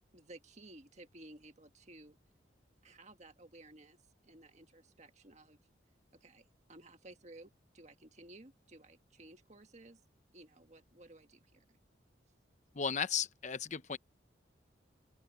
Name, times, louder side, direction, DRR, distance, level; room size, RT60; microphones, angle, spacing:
voice 1, 0.1-2.2 2.8-4.0 4.2-5.6 6.2-10.0 10.3-11.7, right 2 dB, 40° right, 1.7 m, -56 dB
voice 2, 12.7-14.0, left 7 dB, 40° left, 0.8 m, -35 dB
open air
head